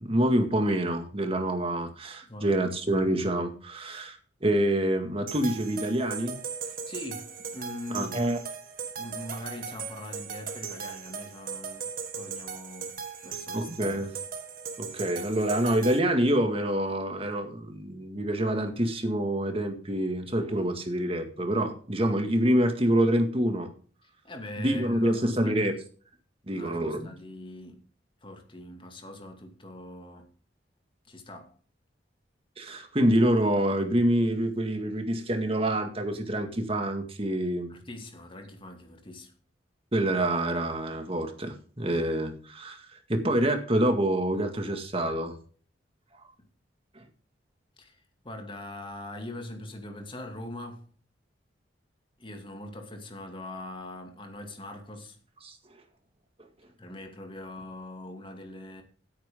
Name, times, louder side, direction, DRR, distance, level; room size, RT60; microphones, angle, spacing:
voice 1, 0.0-6.4 7.9-8.4 13.5-14.1 14.8-23.7 24.6-25.8 26.5-27.1 32.6-37.7 39.9-45.3 55.4-55.6, right 1 dB, 30° right, 2.0 m, -26 dB
voice 2, 2.2-2.7 6.6-8.3 9.0-12.9 13.2-13.9 24.0-25.7 26.5-27.8 28.2-30.3 31.0-31.6 37.7-39.3 46.4-46.5 47.8-48.0 48.2-50.9 52.2-55.2 56.8-58.8, left 1 dB, 25° left, 2.4 m, -42 dB
sound 1, 5.3-16.0, right 6 dB, 50° right, 1.7 m, -38 dB
15.5 x 9.0 x 3.8 m
head